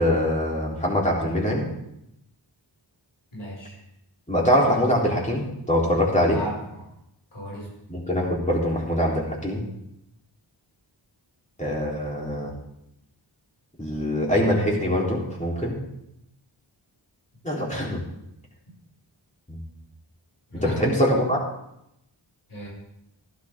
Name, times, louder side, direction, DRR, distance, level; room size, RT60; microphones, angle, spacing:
voice 1, 0.0-1.6 4.3-6.4 7.9-9.6 11.6-12.5 13.8-15.8 17.4-18.0 19.5-19.6 20.6-21.4, equal, 15° left, -4 dB, 3.9 m, -23 dB
voice 2, 3.3-3.7 6.3-6.9 7.3-7.7 18.7-18.8 20.5-21.0 22.5-22.7, equal, 85° left, -4 dB, 6.1 m, -35 dB
14.5 x 11.5 x 3.8 m, 0.81 s
wide cardioid pair, 55°, 47 cm